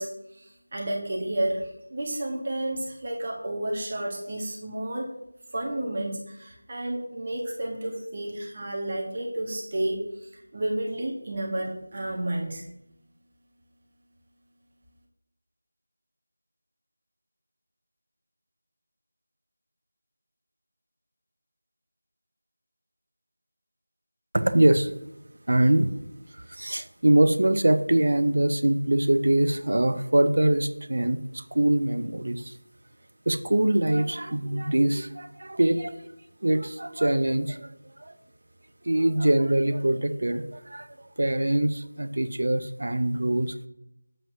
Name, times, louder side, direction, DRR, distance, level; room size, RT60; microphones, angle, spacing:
voice 1, 0.0-5.1 5.5-10.0 10.3-12.7, right 1 dB, 35° right, -1 dB, 1.2 m, -31 dB
voice 2, 24.3-24.9 25.5-25.9 26.3-32.6 33.3-36.1 36.4-37.7 38.0-38.2 38.8-43.7, right 1 dB, 60° right, 11 dB, 0.6 m, -23 dB
8.0 x 7.6 x 2.6 m, 0.84 s
figure-of-eight pair, 170°, 0 cm